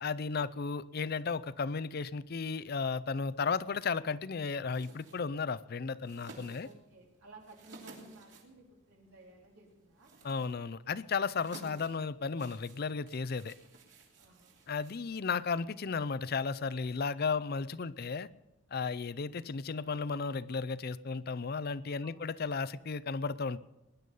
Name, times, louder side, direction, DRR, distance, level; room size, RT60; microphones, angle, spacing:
voice 1, 0.0-6.7 10.2-13.5 14.7-18.3 18.7-23.6, left 5 dB, 50° left, 17 dB, 0.5 m, -34 dB
sound 1, 4.6-15.6, right 3 dB, 60° right, 3.1 m, -56 dB
voice 2, 6.6-10.1 14.2-14.6 22.0-22.3, right 2 dB, 85° right, -2 dB, 3.7 m, -56 dB
20.5 x 11.0 x 5.4 m, 0.94 s
head